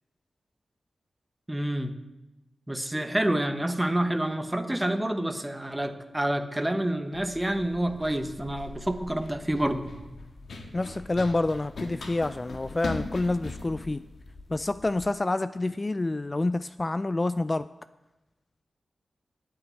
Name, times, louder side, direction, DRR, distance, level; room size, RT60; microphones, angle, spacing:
voice 1, 1.5-1.9 2.7-9.8, right 1 dB, 10° right, 8 dB, 1.1 m, -28 dB
Run, 7.1-15.1, left 3 dB, 75° left, 1.6 m, -41 dB
voice 2, 10.7-14.0 14.5-17.7, left 2 dB, 30° left, 14 dB, 0.3 m, -28 dB
9.1 x 8.8 x 9.3 m, 1.0 s
wide cardioid pair, 75°, 0 cm